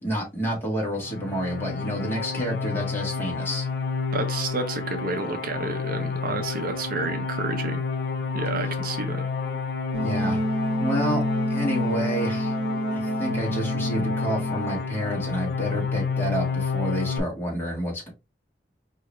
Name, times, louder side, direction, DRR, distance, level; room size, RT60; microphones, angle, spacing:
voice 1, 0.0-3.7 10.0-10.4 10.8-11.2 11.5-12.6 12.9-18.1, right 1 dB, 15° left, 1.7 m, -29 dB
sound 1, 0.9-17.2, left 5 dB, 65° left, 0.6 m, -30 dB
voice 2, 4.1-7.8 8.3-9.3, right 3 dB, 50° right, 0.6 m, -30 dB
Wind instrument woodwind instrument, 9.9-14.8, right 1 dB, 35° right, 1.1 m, -28 dB
4.7 x 2.8 x 3.1 m
head